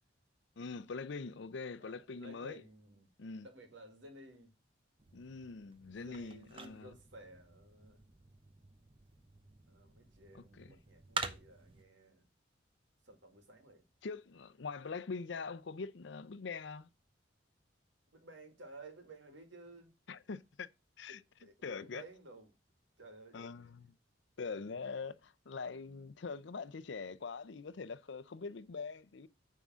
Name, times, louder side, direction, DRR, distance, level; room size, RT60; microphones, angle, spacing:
voice 1, 0.6-2.6 3.2-3.5 5.1-6.9 10.3-10.7 14.0-16.9 20.1-20.7 21.0-21.2 21.6-22.0 23.3-23.9 24.4-29.3, left 4 dB, 70° left, 0.5 m, -43 dB
voice 2, 1.8-3.1 3.4-4.6 5.9-8.0 9.7-12.3 13.0-13.9 18.1-19.9 21.1-22.5 23.0-23.7 24.5-24.9, right 2 dB, 75° right, 2.0 m, -55 dB
sound 1, 5.0-11.8, right 4 dB, 30° right, 0.7 m, -47 dB
9.3 x 3.7 x 6.1 m
head